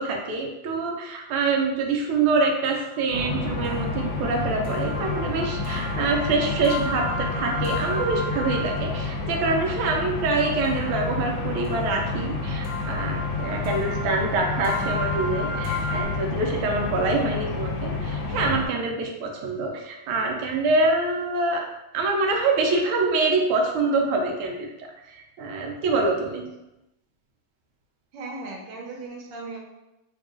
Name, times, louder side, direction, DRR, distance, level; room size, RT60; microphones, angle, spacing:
voice 1, 0.0-21.6 21.9-26.5, right 3 dB, 90° right, 1 dB, 1.5 m, -25 dB
sound 1, 2.6-9.1 10.6-16.1, left 1 dB, 35° left, 1.1 m, -35 dB
sound 2, 3.1-18.7, left 3 dB, 75° left, 1.4 m, -29 dB
voice 2, 28.1-29.6, right 3 dB, 70° right, -1 dB, 1.3 m, -37 dB
3.6 x 2.3 x 3.6 m, 0.95 s
omnidirectional pair, 2.3 m